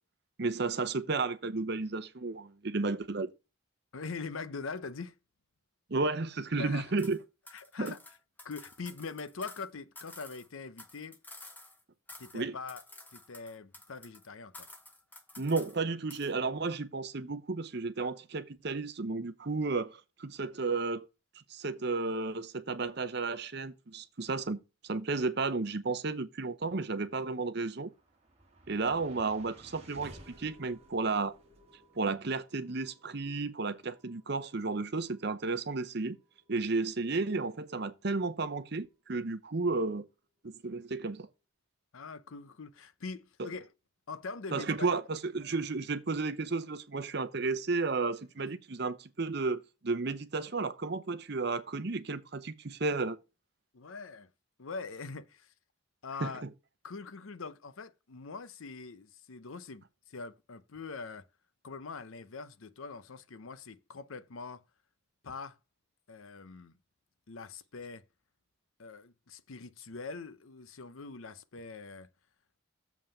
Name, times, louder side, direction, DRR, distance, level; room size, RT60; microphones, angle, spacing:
voice 1, 0.4-3.3 5.9-7.2 7.8-7.9 12.3-12.6 15.4-21.1 21.5-27.9 28.7-31.3 32.0-36.2 36.5-40.1 40.4-41.3 43.4-43.5 44.5-53.2 56.2-56.5, right 3 dB, 50° right, 0.7 m, -33 dB
voice 2, 3.9-5.2 6.6-6.9 7.5-8.0 8.4-11.2 12.2-12.8 13.1-14.7 41.9-43.7 44.1-45.0 48.4-48.5 53.7-54.3 54.6-55.5 56.0-56.4 56.8-61.3 61.6-64.6 65.2-65.6 66.1-66.7 67.3-68.0 68.8-72.1, left 4 dB, 75° left, 0.7 m, -43 dB
sound 1, 7.0-7.2 7.5-9.7 9.9-11.8 12.1-12.4 12.7-14.3 14.5-15.8 16.1-16.3, left 2 dB, 10° left, 0.9 m, -51 dB
sound 2, 27.4-39.8, right 1 dB, 30° right, 1.7 m, -58 dB
7.3 x 5.5 x 5.6 m
head